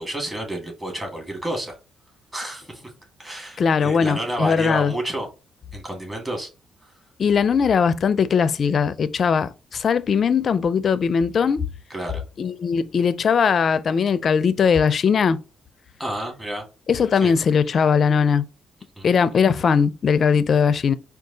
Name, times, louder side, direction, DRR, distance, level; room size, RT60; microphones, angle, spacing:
voice 1, 0.0-1.8 2.3-2.8 3.2-5.3 5.7-6.5 6.8-6.9 11.9-12.2 16.0-16.6 17.2-17.3 19.0-19.2, right 1 dB, 15° right, 1.9 m, -30 dB
voice 2, 3.6-4.9 7.2-11.6 12.4-15.4 16.9-18.4 19.0-20.9, left 6 dB, 50° left, 0.4 m, -20 dB
4.7 x 2.4 x 3.9 m
cardioid pair, 90°, 0 cm